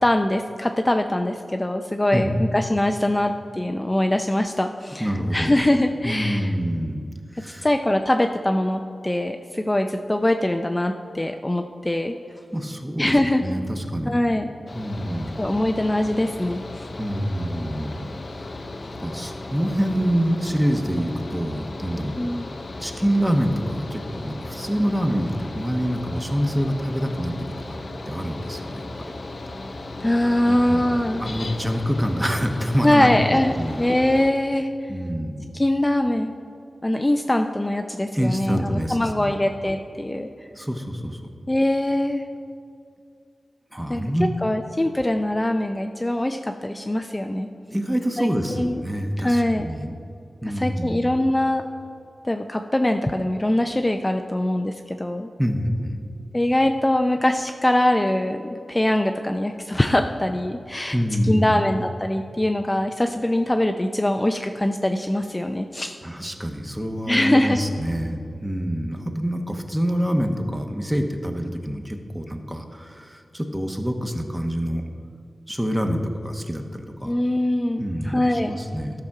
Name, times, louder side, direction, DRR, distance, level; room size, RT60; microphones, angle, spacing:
voice 1, 0.0-6.5 7.6-12.1 13.0-13.4 14.1-14.5 15.4-16.9 22.2-22.5 30.0-31.2 32.8-33.5 33.8-34.9 35.5-36.3 36.8-40.3 41.5-42.2 43.9-44.0 44.4-47.5 48.2-48.8 49.2-49.7 50.4-51.6 52.2-55.3 56.3-61.0 61.2-66.0 67.1-67.6 77.0-78.6, left 1 dB, 20° left, 5 dB, 0.5 m, -22 dB
voice 2, 2.1-2.5 5.0-5.5 6.0-7.0 7.4-7.7 12.5-13.1 13.4-14.2 14.7-15.4 17.0-18.1 18.4-18.5 18.9-22.2 22.8-27.4 27.7-27.8 28.1-29.1 30.5-30.9 31.2-33.8 34.9-35.4 38.1-39.4 40.5-41.2 43.7-44.3 47.7-50.0 50.4-51.1 55.4-56.0 60.9-61.7 66.0-74.8 75.5-77.1 77.8-78.9, equal, 10° right, 4 dB, 1.1 m, -26 dB
Mechanical fan, 14.7-34.3, left 2 dB, 60° left, 0.7 m, -36 dB
13.0 x 5.9 x 4.8 m, 2.4 s
cardioid pair, 55°, 0 cm